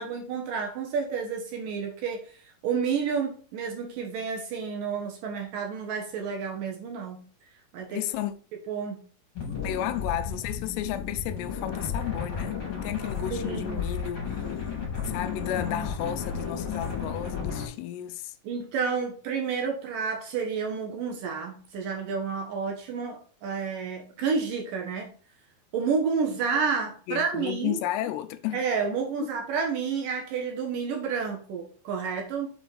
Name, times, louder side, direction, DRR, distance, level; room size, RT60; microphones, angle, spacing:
voice 1, 0.0-2.2 2.6-7.2 7.7-8.0 8.7-9.0 13.3-13.8 18.4-25.1 25.7-27.8 28.5-32.5, right 5 dB, 65° right, 2.5 m, -30 dB
voice 2, 7.9-8.3 9.6-14.7 15.1-18.4 27.1-28.6 29.2-29.3, left 12 dB, 85° left, 2.8 m, -33 dB
sound 1, 9.4-17.7, left 6 dB, 35° left, 3.3 m, -33 dB
7.2 x 4.5 x 4.0 m
omnidirectional pair, 4.8 m